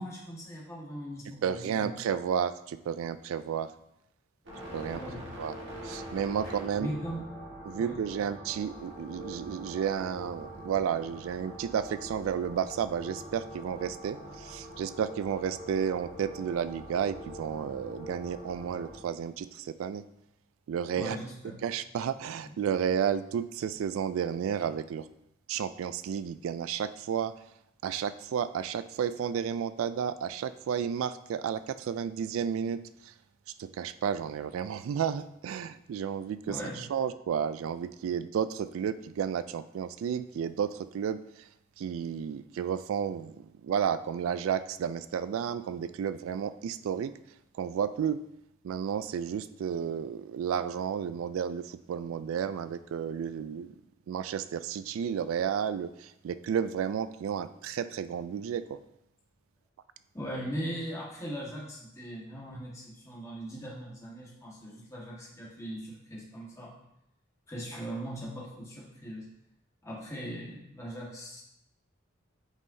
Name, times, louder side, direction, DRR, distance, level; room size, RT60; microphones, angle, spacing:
voice 1, 0.0-1.9 4.9-5.3 6.7-7.3 7.8-8.0 20.9-21.6 36.5-36.8 60.1-66.7 67.5-69.3 69.8-71.4, equal, 15° left, -4 dB, 1.5 m, -39 dB
voice 2, 1.4-3.7 4.7-5.0 5.4-5.5 5.8-6.9 7.7-20.0 20.7-21.2 21.6-25.1 25.5-27.3 27.8-33.1 33.6-41.5 41.8-43.3 43.6-47.1 47.6-48.2 48.6-53.7 54.1-58.8, right 8 dB, 80° right, 14 dB, 0.3 m, -32 dB
sound 1, 4.5-19.0, equal, 60° right, 1.6 m, -44 dB
8.0 x 5.5 x 2.7 m, 0.82 s
head